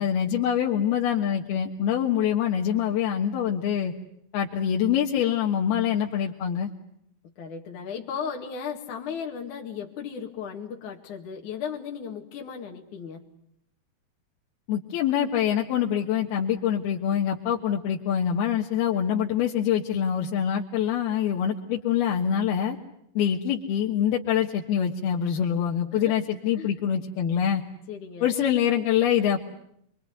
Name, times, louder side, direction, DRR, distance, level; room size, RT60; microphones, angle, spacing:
voice 1, 0.0-3.9 4.3-6.7 14.7-22.8 23.1-27.6 28.2-29.4, left 9 dB, 80° left, 0 dB, 3.4 m, -25 dB
voice 2, 7.2-13.2 25.9-26.1 26.5-26.7 27.9-28.3, left 7 dB, 55° left, 1 dB, 3.3 m, -36 dB
27.5 x 23.0 x 9.5 m, 0.73 s
omnidirectional pair, 4.4 m